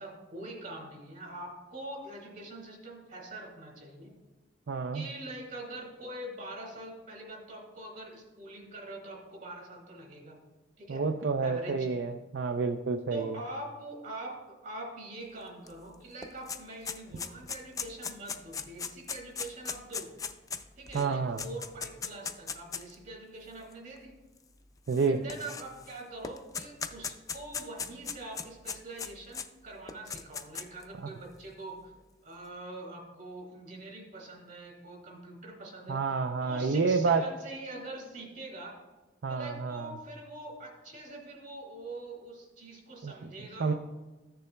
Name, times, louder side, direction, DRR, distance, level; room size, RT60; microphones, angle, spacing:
voice 1, 0.0-4.1 4.9-10.4 10.8-11.1 11.4-11.9 13.1-20.1 20.8-24.1 25.0-31.9 32.2-36.0 36.4-38.8 39.3-43.7, right 2 dB, 50° right, -1 dB, 2.6 m, -44 dB
voice 2, 4.7-5.0 10.9-13.4 20.9-21.4 24.9-25.2 35.9-37.3 39.2-39.9 43.0-43.1 43.6-43.7, right 4 dB, 70° right, 6 dB, 0.5 m, -29 dB
sound 1, 15.7-15.8 16.0-22.9 23.7-23.8 24.9-25.9 26.2-29.5 29.9-30.8, left 6 dB, 20° left, 0.4 m, -38 dB
14.0 x 6.8 x 2.2 m, 1.1 s
head